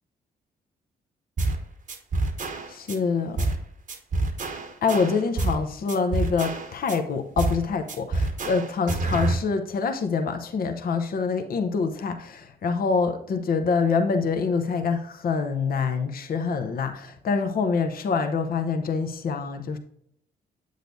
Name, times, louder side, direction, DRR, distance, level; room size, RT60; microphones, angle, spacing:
sound 1, 1.4-1.6 1.9-3.0 3.4-3.6 3.9-5.6 5.9-7.0 7.4-7.6 7.9-9.4, right 2 dB, 45° right, 1.0 m, -27 dB
voice 1, 2.7-3.4 4.8-19.8, left 5 dB, 55° left, 6 dB, 0.8 m, -26 dB
7.9 x 6.6 x 2.6 m, 0.68 s
supercardioid pair, 55°, 19 cm